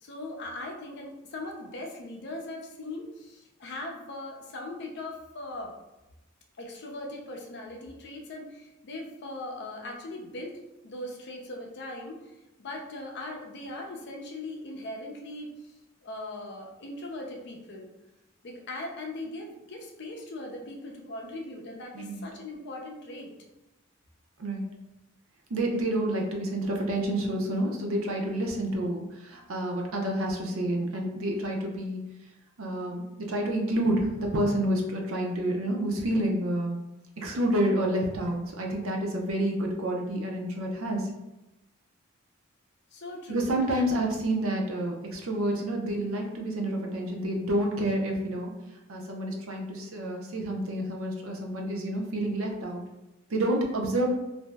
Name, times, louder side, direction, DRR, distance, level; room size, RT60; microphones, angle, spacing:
voice 1, 0.0-5.7 6.6-12.2 12.6-15.5 16.0-17.9 18.4-23.3 42.9-43.8, left 2 dB, 55° left, 1 dB, 0.5 m, -39 dB
voice 2, 25.5-32.1 32.6-36.8 37.2-41.1 43.3-48.5 48.9-52.8 53.3-54.1, right 1 dB, 75° right, 0 dB, 0.6 m, -29 dB
2.6 x 2.0 x 3.3 m, 0.99 s
head